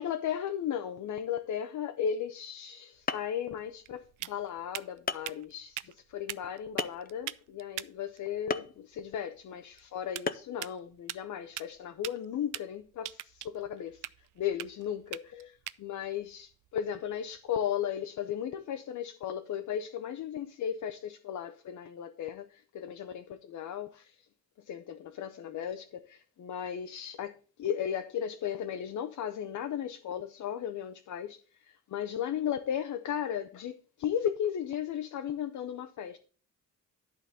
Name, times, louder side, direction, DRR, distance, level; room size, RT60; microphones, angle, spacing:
voice 1, 0.0-14.0 14.4-24.3 24.7-36.2, left 9 dB, 70° left, 0.7 m, -36 dB
sound 1, 2.7-2.8 3.1-3.5 4.3-4.4 5.1-5.3 6.8-7.2 8.5-8.8 10.3-10.6, left 5 dB, 30° left, 0.5 m, -33 dB
sound 2, 2.9-17.6, right 13 dB, 75° right, 0.5 m, -45 dB
11.0 x 3.9 x 6.6 m
cardioid pair, 125°, 31 cm